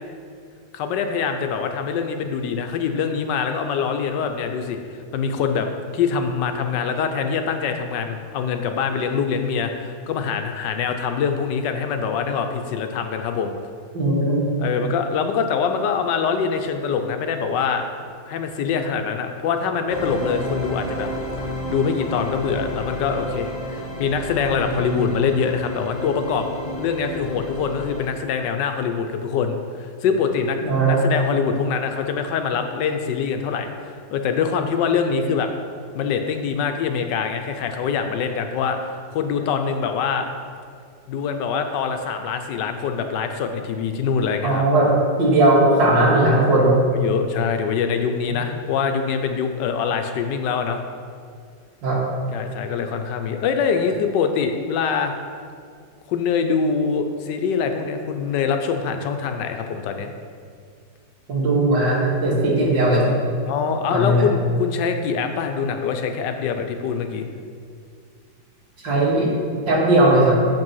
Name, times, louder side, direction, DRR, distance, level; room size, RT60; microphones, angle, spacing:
voice 1, 0.7-5.7 5.9-13.5 14.6-17.8 18.3-21.1 21.5-30.6 30.8-35.5 35.9-38.8 39.1-40.3 41.1-44.6 46.9-50.8 52.3-55.1 56.1-60.1 63.5-67.3, left 6 dB, 75° left, 6 dB, 1.2 m, -24 dB
voice 2, 13.9-14.5 24.6-24.8 30.6-31.1 44.4-44.9 45.2-46.8 48.3-48.4 51.8-52.0 61.3-63.2 63.9-64.3 68.8-69.3 69.7-70.4, right 1 dB, 80° right, -5 dB, 2.5 m, -18 dB
sound 1, 19.9-28.1, equal, 25° left, 1.1 m, -31 dB
7.4 x 5.3 x 5.5 m, 2.2 s
omnidirectional pair, 2.0 m